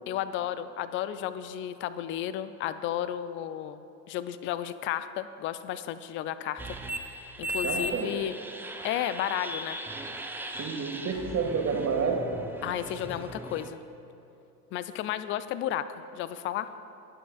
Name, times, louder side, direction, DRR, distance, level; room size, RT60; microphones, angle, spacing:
voice 1, 0.1-6.6 7.4-8.4 8.8-9.8 12.6-13.8 14.7-16.7, left 11 dB, 25° left, 13 dB, 0.4 m, -33 dB
sound 1, 6.6-13.7, equal, 5° right, 0.7 m, -38 dB
voice 2, 7.6-8.1 10.6-12.2, right 5 dB, 30° right, 1 dB, 1.9 m, -29 dB
20.5 x 9.4 x 2.4 m, 3.0 s
figure-of-eight pair, 70°, 49 cm